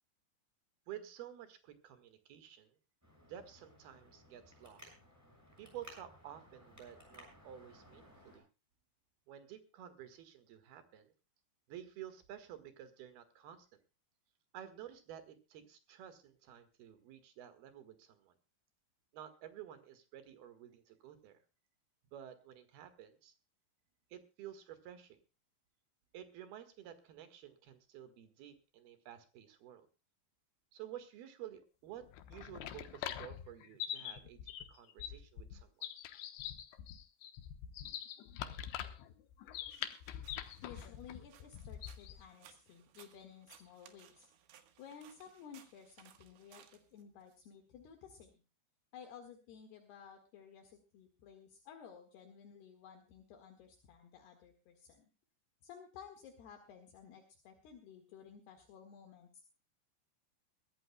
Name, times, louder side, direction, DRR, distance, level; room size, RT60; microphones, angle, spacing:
voice 1, 0.9-2.8 3.2-4.9 5.6-8.5 9.3-11.1 11.7-13.8 14.5-18.3 19.1-21.4 22.1-23.3 24.1-25.2 26.1-29.9 30.7-35.9, right 10 dB, 65° right, 10 dB, 3.3 m, -52 dB
Traffic noise roadway noise, 3.0-8.4, equal, 5° right, 6.3 m, -59 dB
sound 1, 32.0-42.2, left 11 dB, 85° left, 3.3 m, -44 dB
sound 2, 39.7-47.4, right 10 dB, 85° right, 3.7 m, -63 dB
voice 2, 40.6-44.3 44.8-48.4 48.9-55.1 55.6-59.4, left 7 dB, 70° left, 3 dB, 3.6 m, -55 dB
22.5 x 14.0 x 2.3 m, 0.32 s
omnidirectional pair, 5.1 m